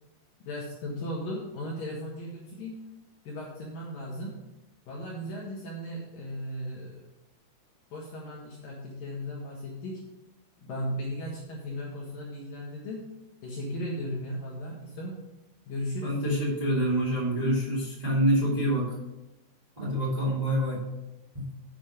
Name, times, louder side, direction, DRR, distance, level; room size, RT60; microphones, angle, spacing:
voice 1, 0.4-2.8 3.2-4.3 4.9-7.0 7.9-10.0 10.6-13.0 13.4-15.2 15.7-16.2, equal, 60° left, -4 dB, 2.5 m, -36 dB
voice 2, 16.0-18.9 19.8-20.8 21.3-21.4, equal, 15° right, -6 dB, 1.5 m, -26 dB
7.9 x 7.5 x 5.1 m, 0.97 s
omnidirectional pair, 5.6 m